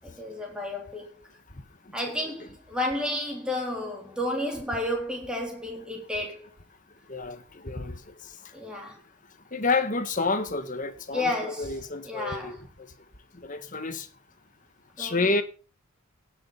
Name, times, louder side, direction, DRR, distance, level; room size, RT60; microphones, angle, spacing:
voice 1, 0.0-1.2 1.9-6.5 8.5-9.0 11.1-11.8 12.0-12.6 15.0-15.3, left 1 dB, 5° right, 3.7 m, -31 dB
voice 2, 7.1-8.5 9.5-12.9 13.3-14.1 15.0-15.4, left 3 dB, 35° left, 1.3 m, -30 dB
17.5 x 6.9 x 5.5 m
head